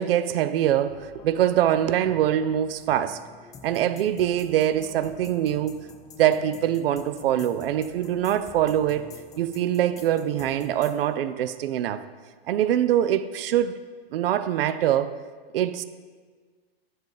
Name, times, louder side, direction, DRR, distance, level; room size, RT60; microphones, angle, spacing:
voice 1, 0.0-3.2 3.6-5.8 6.2-12.1 12.5-13.8 14.1-15.2 15.5-15.8, right 11 dB, 65° right, 13 dB, 0.6 m, -24 dB
sound 1, 0.9-11.0, left 5 dB, 10° left, 0.4 m, -47 dB
10.0 x 3.9 x 7.1 m, 1.5 s
hypercardioid pair, 140°, 31 cm